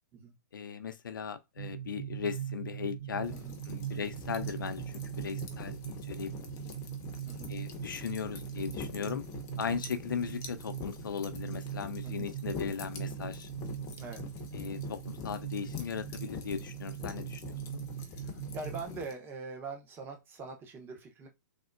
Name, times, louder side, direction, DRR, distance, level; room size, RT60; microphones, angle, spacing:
voice 1, 0.5-3.3 3.7-6.3 7.5-9.2 9.6-13.5 14.5-17.8, left 7 dB, 90° left, 0.5 m, -38 dB
sound 1, 1.6-18.8, right 11 dB, 80° right, 0.4 m, -41 dB
sound 2, 3.2-19.1, left 7 dB, 25° left, 0.6 m, -45 dB
voice 2, 7.3-7.6 12.0-12.6 14.0-14.2 17.9-21.3, right 4 dB, 20° right, 0.7 m, -44 dB
3.5 x 2.1 x 2.4 m
hypercardioid pair, 135°, 11 cm